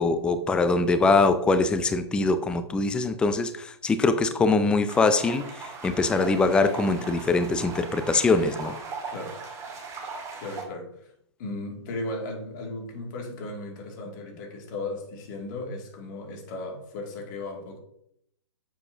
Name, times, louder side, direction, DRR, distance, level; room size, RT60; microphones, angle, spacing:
voice 1, 0.0-8.8, left 3 dB, 5° left, 11 dB, 0.4 m, -23 dB
sound 1, 4.9-10.6, right 4 dB, 20° right, 1.9 m, -39 dB
voice 2, 10.4-11.1 11.4-17.8, left 2 dB, 40° left, 1 dB, 2.5 m, -36 dB
9.7 x 7.1 x 2.8 m, 0.72 s
figure-of-eight pair, 120°, 15 cm